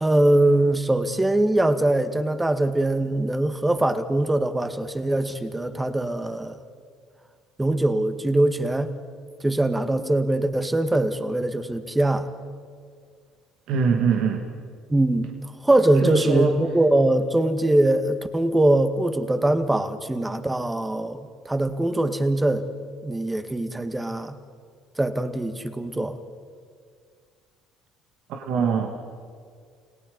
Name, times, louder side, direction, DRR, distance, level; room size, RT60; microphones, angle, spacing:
voice 1, 0.0-6.6 7.6-8.9 9.4-12.3 14.9-15.3 15.6-22.7 23.0-24.4 25.0-26.1, right 1 dB, 15° right, 9 dB, 1.9 m, -22 dB
voice 2, 13.7-14.5 16.0-16.5 28.3-28.9, right 6 dB, 70° right, 3 dB, 2.2 m, -23 dB
30.0 x 18.0 x 5.6 m, 2.1 s
supercardioid pair, 75°, 0 cm